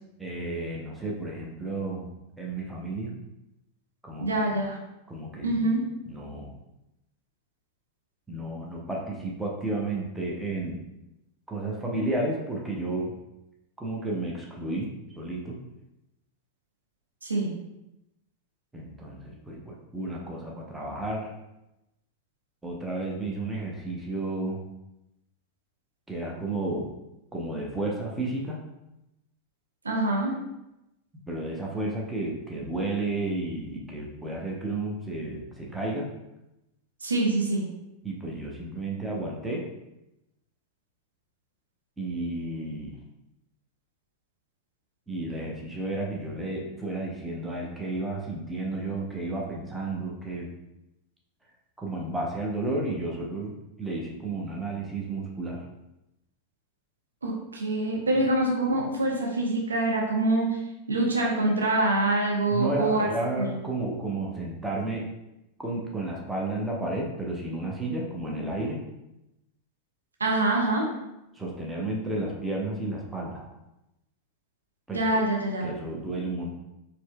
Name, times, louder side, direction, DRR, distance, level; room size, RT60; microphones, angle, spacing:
voice 1, 0.2-2.1 2.4-3.1 4.0-4.3 5.1-5.5 6.1-6.6 8.3-10.8 11.5-13.1 13.8-14.9 15.2-15.6 18.7-21.3 22.6-24.6 26.1-26.9 27.3-28.6 31.3-36.1 38.0-39.6 42.0-43.0 45.1-50.5 51.8-55.6 62.5-65.1 65.6-68.8 71.3-73.4 74.9-75.2 75.6-76.5, right 2 dB, 10° right, -2 dB, 0.7 m, -32 dB
voice 2, 4.2-4.8 5.4-5.9 17.2-17.5 29.8-30.4 37.0-37.7 57.2-60.6 60.9-63.1 63.4-63.5 70.2-70.9 74.9-75.7, right 2 dB, 75° right, -1 dB, 0.6 m, -25 dB
4.3 x 2.7 x 2.2 m, 0.90 s
figure-of-eight pair, 90°, 0 cm